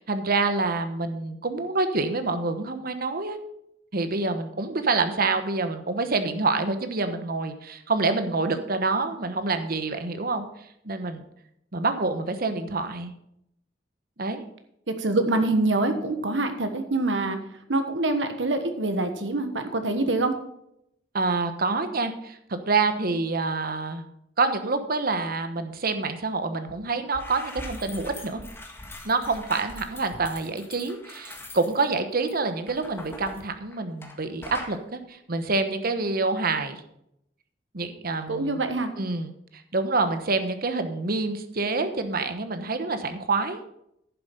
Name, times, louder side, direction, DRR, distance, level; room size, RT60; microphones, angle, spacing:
voice 1, 0.0-3.4 3.9-11.2 11.7-13.1 14.2-14.4 21.1-24.0 24.4-28.4 29.0-36.8 37.7-38.6 39.0-43.6, right 3 dB, 55° right, 9 dB, 1.1 m, -27 dB
voice 2, 14.9-17.4 17.7-20.3 38.3-38.9, right 2 dB, 90° right, 7 dB, 1.4 m, -25 dB
sound 1, 26.7-26.8 27.0-34.2 34.4-34.8, left 1 dB, 15° left, 1.7 m, -42 dB
10.5 x 7.4 x 5.4 m, 0.77 s
head